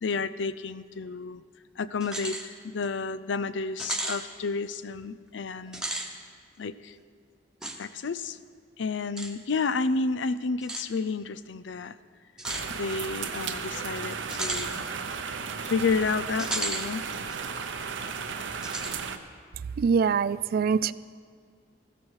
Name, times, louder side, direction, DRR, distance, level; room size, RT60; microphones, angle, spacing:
voice 1, 0.0-1.4 1.8-5.9 6.6-6.9 7.8-8.4 8.8-11.9 12.7-14.8 15.6-17.0, left 4 dB, 75° left, 15 dB, 0.5 m, -31 dB
sound 1, 2.0-2.5 2.9-3.0 3.8-4.2 5.6-6.1 7.6-7.8 9.2-9.3 10.6-10.9 12.4-12.7 14.3-14.7 16.4-16.9 17.3-17.4 18.6-19.0, right 2 dB, 5° right, 1.1 m, -33 dB
sound 2, 12.4-19.2, right 6 dB, 85° right, 0.8 m, -34 dB
voice 2, 19.8-20.9, right 6 dB, 55° right, 18 dB, 0.3 m, -24 dB
15.0 x 13.5 x 4.8 m, 2.1 s
head